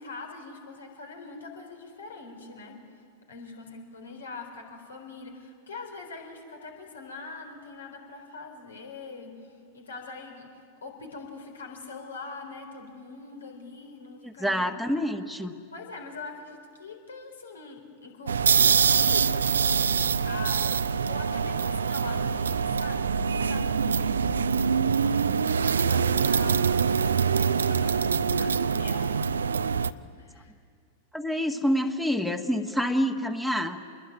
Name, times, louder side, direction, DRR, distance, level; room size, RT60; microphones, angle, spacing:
voice 1, 0.0-2.8 3.3-14.9 15.7-29.3 30.1-30.5, left 3 dB, 70° left, 3 dB, 4.0 m, -43 dB
voice 2, 14.2-15.5 31.1-33.8, equal, 5° left, 6 dB, 1.5 m, -27 dB
sound 1, 18.3-29.9, right 6 dB, 70° right, 0.6 m, -24 dB
26.0 x 21.5 x 9.5 m, 2.2 s
figure-of-eight pair, 90°, 0 cm